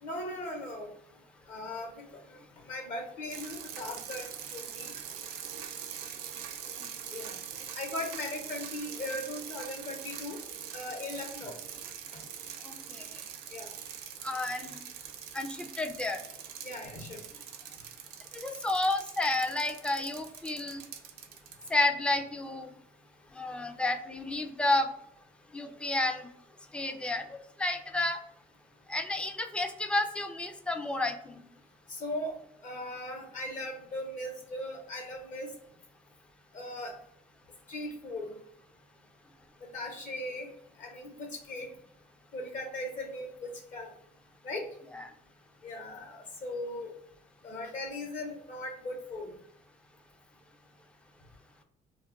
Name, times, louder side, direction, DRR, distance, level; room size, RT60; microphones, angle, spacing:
voice 1, 0.0-0.9 1.5-4.9 7.1-7.4 7.7-10.4 10.7-11.6 13.5-13.7 16.6-17.2 31.9-32.4 32.6-35.5 36.5-36.9 37.7-38.3 39.6-40.5 40.8-41.7 42.3-43.9 44.4-44.7 45.6-47.0 47.4-49.3, left 1 dB, 50° left, 2 dB, 0.7 m, -38 dB
sound 1, 3.3-21.7, right 8 dB, 75° right, 0.4 m, -43 dB
voice 2, 12.6-13.0 14.2-14.8 15.3-16.2 18.3-20.8 21.7-22.7 23.3-24.9 25.5-26.3 26.7-27.2 27.6-28.2 28.9-31.4 44.9-45.0, left 2 dB, 5° left, 5 dB, 0.3 m, -31 dB
2.3 x 2.2 x 3.6 m, 0.73 s
cardioid pair, 110°, 17 cm